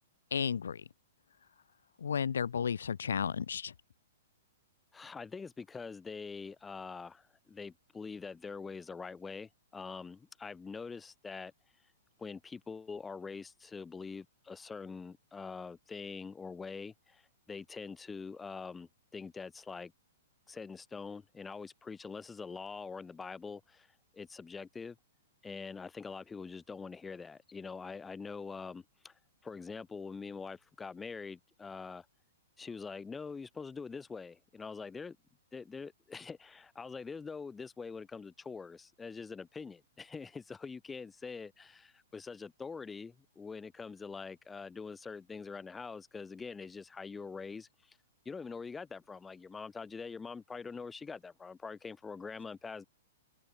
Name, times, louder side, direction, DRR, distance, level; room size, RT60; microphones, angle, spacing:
voice 1, 0.3-0.8 2.0-3.7, left 7 dB, 90° left, 2.8 m, -33 dB
voice 2, 4.9-11.5 12.2-19.9 20.5-25.0 25.4-29.1 29.4-32.1 32.6-35.2 35.5-48.0 48.3-52.9, left 5 dB, 10° left, 7.4 m, -44 dB
hypercardioid pair, 150°, 0 cm